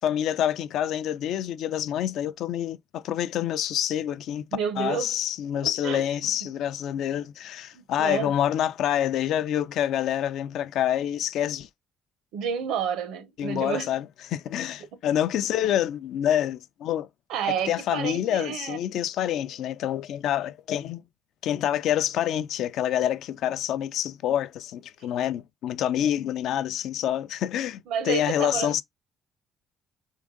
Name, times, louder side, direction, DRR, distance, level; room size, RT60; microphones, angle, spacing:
voice 1, 0.0-4.4 4.8-11.7 13.4-17.1 17.7-21.0 21.4-28.8, left 11 dB, 70° left, 0.4 m, -27 dB
voice 2, 4.5-5.2 5.6-6.0 7.7-8.3 12.3-13.9 14.9-15.0 17.3-18.8 27.9-28.8, right 7 dB, 85° right, 0.9 m, -30 dB
3.7 x 3.4 x 3.7 m
cardioid pair, 115°, 0 cm